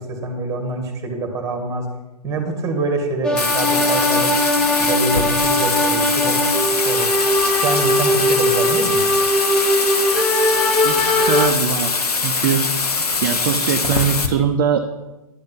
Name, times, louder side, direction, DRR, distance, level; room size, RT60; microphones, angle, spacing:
voice 1, 0.1-1.9 2.2-4.3 4.8-6.4 6.8-7.1 7.5-9.0, right 3 dB, 15° right, 5 dB, 2.0 m, -25 dB
sound 1, 3.2-11.5, left 1 dB, 5° left, 0.9 m, -20 dB
Bathtub (filling or washing), 3.4-14.3, left 4 dB, 70° left, 1.5 m, -22 dB
voice 2, 10.8-12.7 13.0-14.8, right 8 dB, 35° right, 6 dB, 0.7 m, -22 dB
10.5 x 5.3 x 7.7 m, 1.1 s
figure-of-eight pair, 130°, 20 cm